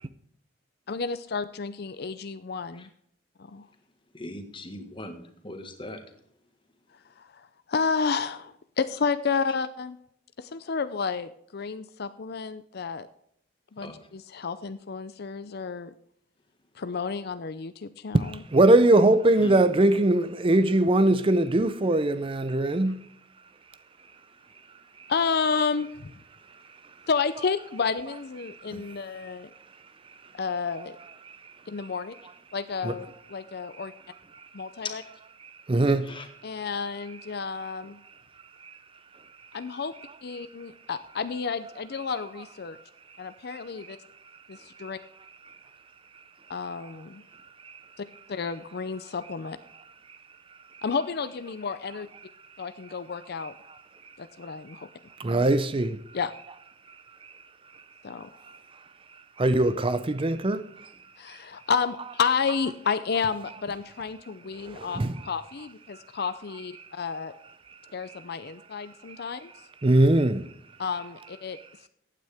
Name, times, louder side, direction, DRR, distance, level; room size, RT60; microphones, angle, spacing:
voice 1, 0.9-2.9 3.5-3.6 7.2-10.0 10.4-13.1 13.8-15.9 16.8-18.4 25.1-26.1 27.1-29.5 30.3-31.0 31.7-32.1 32.5-33.9 34.5-35.0 36.4-38.0 39.5-39.9 40.2-42.8 43.2-44.0 44.5-45.0 46.5-47.2 48.0-49.6 50.8-52.1 52.6-53.5 54.2-54.9 56.1-56.3 58.0-58.3 61.2-67.3 67.9-69.5 70.8-71.6, left 5 dB, 55° left, 0.5 m, -31 dB
voice 2, 4.1-6.0 13.8-14.0 19.4-19.5 34.8-34.9 36.1-36.2, left 2 dB, 25° left, 1.6 m, -39 dB
voice 3, 18.1-23.1 25.0-25.4 27.8-28.0 28.3-29.0 31.0-32.2 32.8-33.0 33.7-33.9 34.3-34.5 34.8-35.1 35.4-36.2 37.1-37.4 38.6-38.8 39.4-40.5 41.4-41.5 41.9-42.8 43.1-43.2 43.5-44.0 44.7-44.9 45.2-45.6 46.1-46.2 46.8-47.0 47.6-47.8 48.4-48.5 49.2-49.3 49.7-50.2 50.7-51.1 51.9-52.3 52.8-54.2 54.4-54.9 55.2-56.5 56.9-57.0 57.2-57.3 58.4-58.8 59.4-60.9 61.3-61.4 63.2-63.8 64.5-65.4 65.9-66.3 66.6-66.9 67.7-68.5 69.1-69.3 69.8-70.5 70.9-71.7, right 2 dB, 25° right, 0.5 m, -26 dB
15.0 x 9.3 x 3.5 m
head